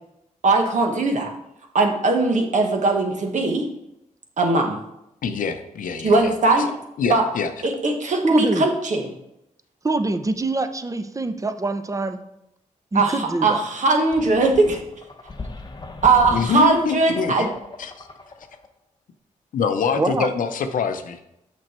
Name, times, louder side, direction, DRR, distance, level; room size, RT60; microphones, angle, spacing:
voice 1, 0.4-1.3 1.7-3.7 4.4-4.8 6.0-6.7 7.1-7.2 7.6-9.1 12.9-14.8 16.0-17.5, right 3 dB, 65° right, 3 dB, 1.4 m, -19 dB
voice 2, 5.2-6.3 7.0-7.5 16.3-17.5 17.8-18.1 19.5-21.4, left 5 dB, 85° left, 8 dB, 0.7 m, -25 dB
voice 3, 8.2-8.6 9.8-12.2 12.9-13.6 20.0-20.3, right 2 dB, 25° right, 9 dB, 0.7 m, -24 dB
sound 1, 14.1-18.7, left 3 dB, 30° left, 0.8 m, -38 dB
6.2 x 6.2 x 4.4 m, 0.83 s
cardioid pair, 70°, 14 cm